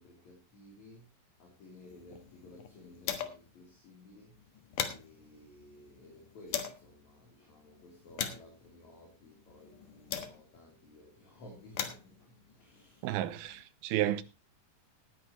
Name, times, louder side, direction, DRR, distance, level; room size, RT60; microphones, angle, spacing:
voice 1, 0.0-13.2, left 1 dB, 50° left, 4.6 m, -56 dB
sound 1, 1.8-3.6 3.9-4.0 4.3-6.9 7.5-10.7 11.4-13.6, left 9 dB, 65° left, 2.8 m, -41 dB
voice 2, 13.0-14.2, right 13 dB, 85° right, 2.8 m, -32 dB
19.0 x 9.9 x 3.0 m
omnidirectional pair, 4.3 m